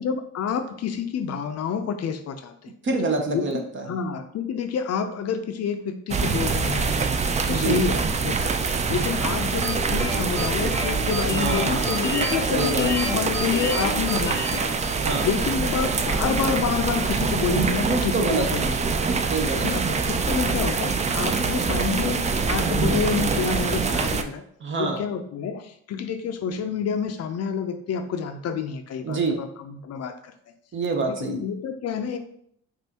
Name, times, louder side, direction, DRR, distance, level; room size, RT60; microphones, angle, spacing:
voice 1, 0.0-2.7 3.3-7.1 7.5-8.0 8.2-8.5 8.9-14.6 15.2-19.0 19.6-24.4 24.8-30.3 31.1-32.2, left 6 dB, 55° left, 8 dB, 0.5 m, -28 dB
voice 2, 2.8-4.0 7.5-7.8 11.3-12.9 15.0-15.3 17.9-18.7 19.3-19.7 24.6-25.0 29.0-29.4 30.7-31.4, right 3 dB, 40° right, 3 dB, 0.8 m, -27 dB
sound 1, 6.1-24.2, right 4 dB, 25° right, 0.3 m, -25 dB
sound 2, 9.6-15.4, equal, 10° left, 0.9 m, -31 dB
5.4 x 2.5 x 2.8 m, 0.67 s
cardioid pair, 90°, 30 cm